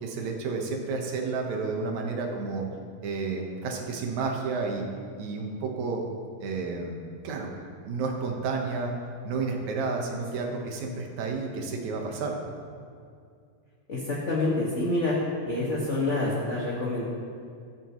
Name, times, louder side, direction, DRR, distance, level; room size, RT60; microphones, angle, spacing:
voice 1, 0.0-2.6 3.0-4.9 5.2-6.0 6.4-7.5 7.8-8.9 9.2-12.4, right 4 dB, 65° right, 1 dB, 2.7 m, -31 dB
voice 2, 13.9-15.2 15.5-17.0, left 2 dB, 30° left, -6 dB, 1.7 m, -27 dB
23.5 x 9.0 x 3.2 m, 2.3 s
omnidirectional pair, 3.6 m